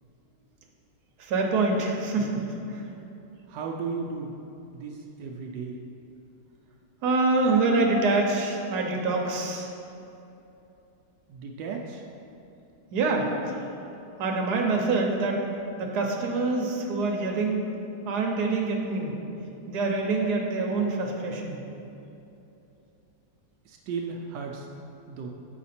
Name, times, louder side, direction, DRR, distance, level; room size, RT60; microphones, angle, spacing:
voice 1, 1.2-2.8 7.0-9.7 12.9-13.6 14.2-15.4 15.8-17.6 18.0-19.2 19.7-21.6, right 3 dB, 70° right, 0 dB, 1.4 m, -25 dB
voice 2, 3.5-4.3 4.7-5.8 11.3-12.0 23.7-24.7 25.1-25.3, right 5 dB, 85° right, 0 dB, 1.3 m, -35 dB
8.0 x 5.0 x 4.2 m, 2.8 s
omnidirectional pair, 1.9 m